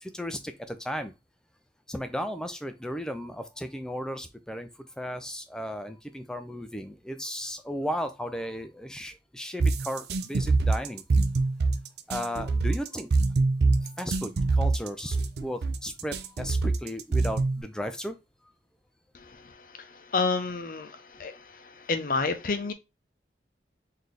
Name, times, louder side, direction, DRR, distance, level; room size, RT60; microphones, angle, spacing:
voice 1, 0.0-1.1 1.9-4.7 5.0-11.0 12.1-13.1 13.8-18.1, equal, 5° left, 0.4 m, -35 dB
sound 1, 9.6-17.6, right 3 dB, 65° right, 0.5 m, -24 dB
voice 2, 20.1-21.3 21.9-22.7, left 4 dB, 50° left, 0.6 m, -28 dB
4.1 x 2.8 x 3.2 m
head